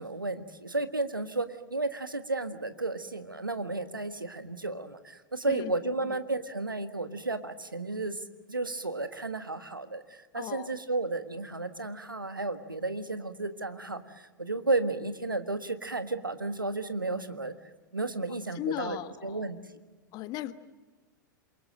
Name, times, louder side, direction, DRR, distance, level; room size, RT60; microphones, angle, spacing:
voice 1, 0.0-8.2 8.5-17.5 17.9-19.8, right 2 dB, 85° right, 10 dB, 1.5 m, -33 dB
voice 2, 10.3-10.7 18.5-19.5 20.1-20.5, left 14 dB, 35° left, 12 dB, 1.3 m, -36 dB
27.5 x 23.0 x 7.7 m, 1.2 s
figure-of-eight pair, 90°, 11 cm